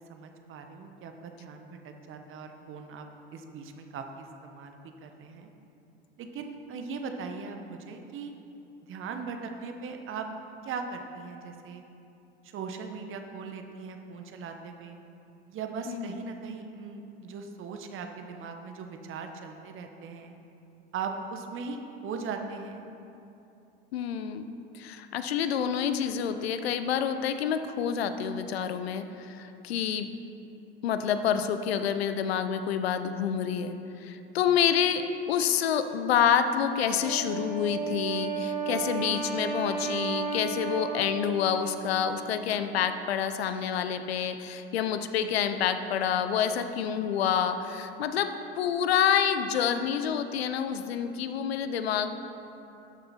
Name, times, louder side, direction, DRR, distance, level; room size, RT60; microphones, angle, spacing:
voice 1, 0.0-5.5 6.2-8.3 8.8-10.3 10.6-11.8 12.4-15.0 15.5-20.3 20.9-22.9, right 5 dB, 40° right, 5 dB, 1.1 m, -39 dB
voice 2, 23.9-24.5 24.7-30.1 30.8-52.1, left 8 dB, 75° left, 9 dB, 0.7 m, -28 dB
Wind instrument woodwind instrument, 37.0-42.4, right 5 dB, 20° right, 2.1 m, -33 dB
12.5 x 6.8 x 4.3 m, 2.8 s
hypercardioid pair, 75°, 31 cm